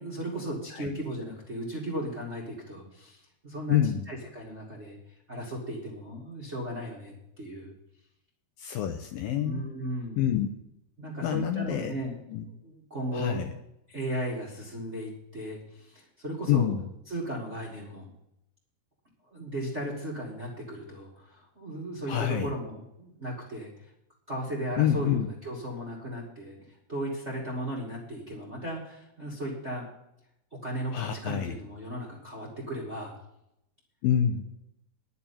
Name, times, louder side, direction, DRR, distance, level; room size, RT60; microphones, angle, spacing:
voice 1, 0.0-5.0 5.3-7.7 9.3-10.2 11.0-12.2 12.6-13.4 13.9-16.7 17.1-18.1 19.3-23.7 24.3-29.9 30.5-33.1, right 1 dB, 25° right, -3 dB, 1.5 m, -36 dB
voice 2, 3.7-4.1 8.6-9.7 10.2-10.5 11.2-11.9 12.3-12.5 13.1-13.5 16.5-16.9 22.1-22.5 24.8-25.3 30.9-31.6 34.0-34.4, left 10 dB, 80° left, 6 dB, 2.2 m, -27 dB
10.5 x 6.9 x 8.4 m, 0.82 s
omnidirectional pair, 4.6 m